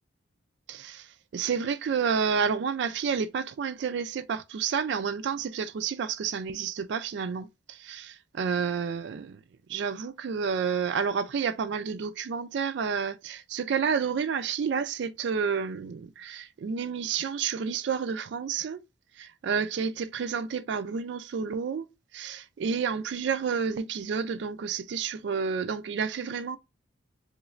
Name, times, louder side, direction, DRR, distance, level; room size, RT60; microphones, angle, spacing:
voice 1, 0.7-1.1 1.3-9.4 9.7-18.8 19.2-21.9 22.1-26.6, right 6 dB, 60° right, 0.3 m, -30 dB
3.1 x 3.1 x 2.4 m
head